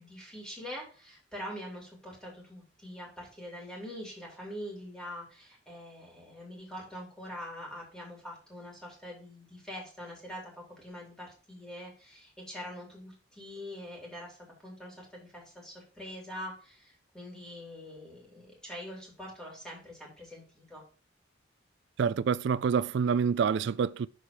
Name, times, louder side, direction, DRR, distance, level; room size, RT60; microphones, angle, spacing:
voice 1, 0.0-14.4 14.6-20.8, equal, 5° left, 2.7 m, -44 dB
voice 2, 22.0-24.1, right 6 dB, 60° right, 0.3 m, -27 dB
6.4 x 4.3 x 5.0 m
head